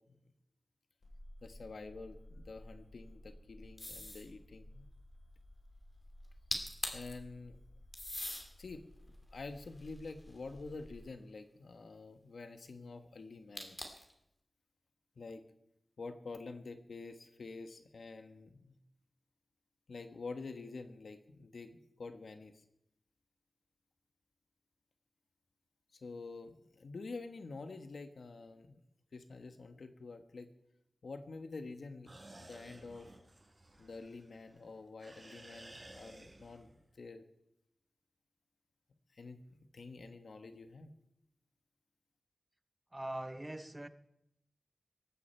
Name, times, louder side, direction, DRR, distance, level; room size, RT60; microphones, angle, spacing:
sound 1, 1.0-11.1, left 1 dB, 70° left, 6.9 m, -55 dB
voice 1, 1.4-4.9 6.9-7.6 8.6-8.9 9.3-13.9 15.2-15.4 16.0-18.7 19.9-22.6 25.9-28.8 29.1-30.5 31.0-33.1 33.8-37.2 39.1-40.9, left 3 dB, 90° left, 8 dB, 1.3 m, -48 dB
sound 2, 3.8-4.3 6.2-6.3 6.5-7.1 7.9-8.5 9.1-10.6 13.6-14.1, left 1 dB, 30° left, 2.7 m, -41 dB
sound 3, 32.1-34.6 35.0-36.8, right 1 dB, 40° right, 5.1 m, -55 dB
voice 2, 42.9-43.9, right 1 dB, 20° right, 11 dB, 0.9 m, -42 dB
18.5 x 14.5 x 4.5 m, 0.82 s
wide cardioid pair, 75°, 0 cm